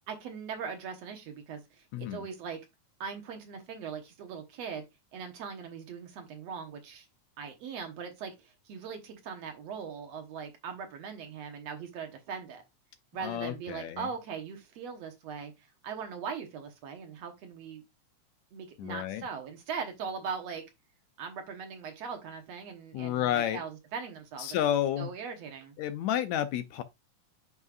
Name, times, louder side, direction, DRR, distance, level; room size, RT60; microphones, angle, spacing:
voice 1, 0.1-2.6 3.0-4.9 5.1-7.1 7.4-12.6 13.1-15.5 15.8-17.8 18.5-20.6 21.2-24.6 25.0-25.7, right 6 dB, 65° right, 2.1 m, -40 dB
voice 2, 1.9-2.3 13.2-14.1 18.8-19.3 22.9-23.6 24.4-25.1 25.8-26.8, left 11 dB, 80° left, 1.8 m, -31 dB
9.3 x 5.3 x 2.4 m
omnidirectional pair, 3.5 m